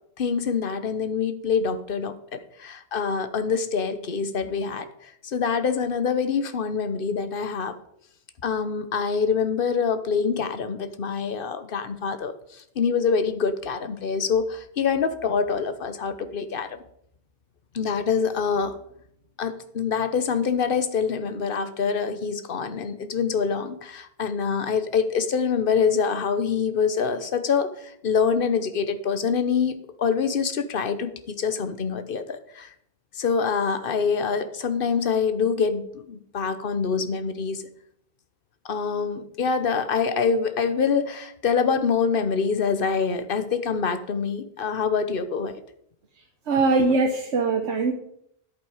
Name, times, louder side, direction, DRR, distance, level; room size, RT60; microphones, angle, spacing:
voice 1, 0.2-7.8 8.4-16.8 17.7-18.8 19.4-32.7 33.1-37.6 38.6-45.5, left 6 dB, 55° left, 11 dB, 1.1 m, -25 dB
voice 2, 46.2-47.9, right 3 dB, 90° right, 3 dB, 1.3 m, -22 dB
11.0 x 8.6 x 4.9 m, 0.72 s
omnidirectional pair, 1.1 m